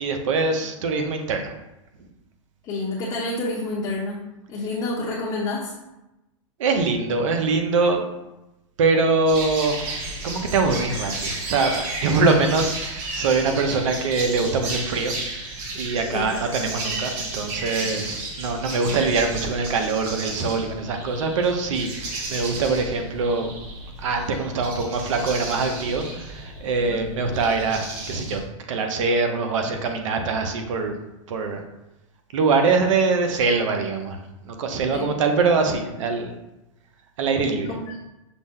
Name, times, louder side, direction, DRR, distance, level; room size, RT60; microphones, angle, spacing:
voice 1, 0.0-1.5 6.6-8.1 8.8-9.8 10.2-15.1 15.7-23.5 24.0-28.4 28.7-30.9 31.3-31.6 32.3-36.3 37.2-37.7, right 4 dB, 70° right, 5 dB, 0.7 m, -23 dB
voice 2, 2.6-4.2 4.5-5.7 16.1-16.3 17.8-18.0 26.8-27.0 34.9-35.1 37.7-37.8, left 2 dB, 30° left, -5 dB, 0.8 m, -29 dB
sound 1, 9.3-28.4, right 2 dB, 45° right, 1.0 m, -33 dB
6.0 x 2.1 x 3.6 m, 0.96 s
hypercardioid pair, 135°, 17 cm